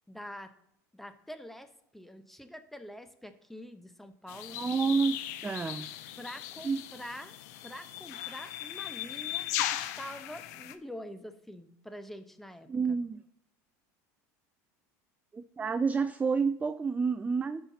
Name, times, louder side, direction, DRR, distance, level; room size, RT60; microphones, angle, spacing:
voice 1, 0.1-0.5 0.9-4.6 6.2-7.4 7.6-13.0, equal, 5° left, 8 dB, 0.9 m, -46 dB
sound 1, 4.3-10.7, left 13 dB, 75° left, 0.6 m, -38 dB
voice 2, 4.5-5.2 5.4-5.9 6.6-6.8 12.7-13.2 15.3-17.6, right 5 dB, 15° right, 11 dB, 0.4 m, -29 dB
13.5 x 5.7 x 2.8 m, 0.79 s
hypercardioid pair, 90°, 9 cm